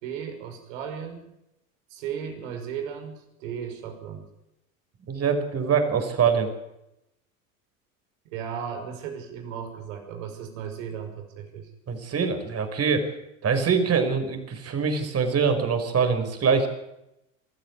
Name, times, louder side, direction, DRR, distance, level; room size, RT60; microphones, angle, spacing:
voice 1, 0.0-1.3 1.9-4.3 8.2-11.7, right 7 dB, 70° right, 5 dB, 5.8 m, -35 dB
voice 2, 5.1-6.5 11.9-13.1 13.4-16.7, right 6 dB, 35° right, 7 dB, 5.5 m, -24 dB
22.5 x 14.0 x 9.7 m, 0.87 s
hypercardioid pair, 85°, 41 cm